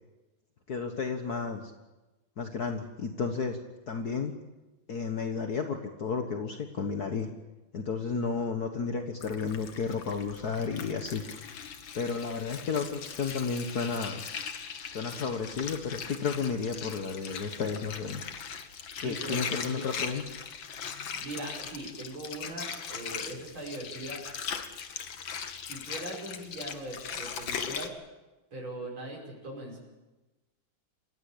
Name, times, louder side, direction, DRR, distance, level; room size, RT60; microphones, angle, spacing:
voice 1, 0.7-1.7 2.4-3.6 3.9-4.3 4.9-7.3 7.7-11.2 11.9-14.2 14.9-18.2 19.0-20.4, left 5 dB, 50° left, 5 dB, 1.8 m, -32 dB
Water, 9.2-27.9, left 7 dB, 70° left, 2.2 m, -39 dB
voice 2, 19.0-19.7 21.2-24.2 25.6-27.9 28.5-29.8, right 1 dB, 75° right, -2 dB, 6.5 m, -40 dB
27.5 x 16.5 x 8.6 m, 1.1 s
omnidirectional pair, 2.2 m